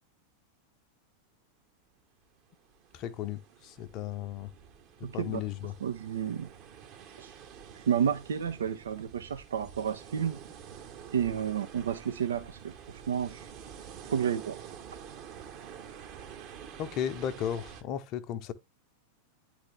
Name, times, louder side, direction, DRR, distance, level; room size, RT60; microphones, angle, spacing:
sound 1, 2.5-17.8, right 8 dB, 40° right, 1.1 m, -48 dB
voice 1, 2.9-4.5 5.1-5.7 16.8-18.5, left 10 dB, 40° left, 0.8 m, -35 dB
voice 2, 5.0-5.4 5.8-6.5 7.2-7.3 7.7-10.4 11.1-13.5 14.1-14.6, right 8 dB, 65° right, 0.6 m, -31 dB
9.7 x 3.5 x 3.4 m
figure-of-eight pair, 90°, 0 cm